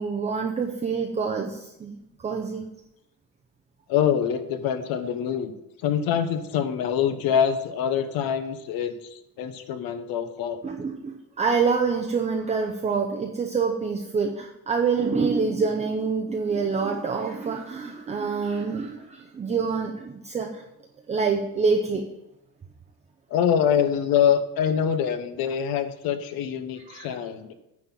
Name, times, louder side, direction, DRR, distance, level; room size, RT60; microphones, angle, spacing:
voice 1, 0.0-2.6 10.6-20.6 21.1-22.0 26.9-27.1, right 5 dB, 20° right, 2 dB, 0.6 m, -26 dB
voice 2, 3.9-5.5 5.8-10.6 23.3-27.5, left 8 dB, 70° left, 10 dB, 1.0 m, -25 dB
9.5 x 4.3 x 7.3 m, 0.87 s
cardioid pair, 170°, 36 cm